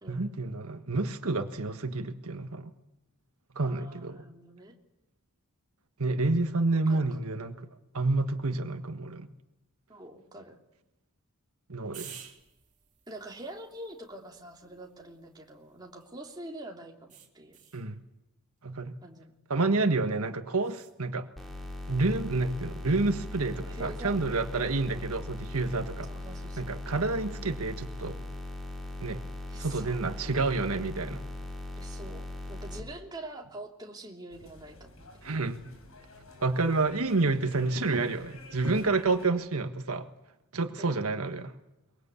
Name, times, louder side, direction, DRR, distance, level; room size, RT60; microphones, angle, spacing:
voice 1, 0.1-2.7 3.5-4.2 6.0-7.6 7.9-9.3 11.7-12.2 17.7-18.0 18.6-18.9 19.5-21.3 21.9-26.1 26.6-28.2 29.0-29.2 29.6-31.2 35.2-35.7 36.4-40.1 40.5-41.6, right 3 dB, 80° right, 7 dB, 1.5 m, -29 dB
voice 2, 3.6-4.7 6.9-7.2 9.9-10.6 13.1-17.6 19.0-19.3 23.6-24.2 24.9-25.1 26.1-26.8 29.5-30.1 31.8-35.0 39.3-39.4 40.8-41.0, right 1 dB, 20° right, 0 dB, 2.9 m, -45 dB
sound 1, 11.9-16.3 17.1-17.9 20.6-21.0, right 9 dB, 35° right, 3.1 m, -52 dB
sound 2, 21.4-32.8, left 1 dB, ahead, 3.7 m, -39 dB
sound 3, 34.3-39.3, left 2 dB, 75° left, 5.1 m, -50 dB
23.5 x 22.0 x 8.4 m, 0.95 s
head